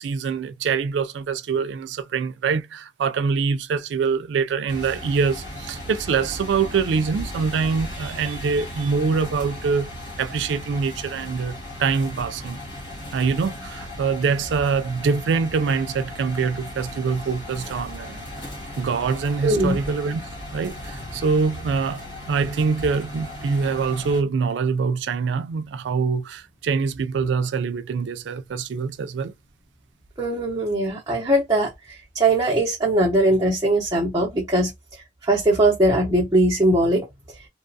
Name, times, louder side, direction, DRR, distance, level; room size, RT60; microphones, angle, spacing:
voice 1, 0.0-9.9 10.2-12.6 13.1-18.3 18.8-20.2 20.5-29.3, right 5 dB, 75° right, 0.3 m, -24 dB
sound 1, 4.7-24.2, left 1 dB, 80° left, 1.6 m, -36 dB
voice 2, 19.4-19.8 30.2-34.7 35.2-37.1, right 1 dB, 20° right, 0.7 m, -20 dB
2.9 x 2.2 x 2.6 m
head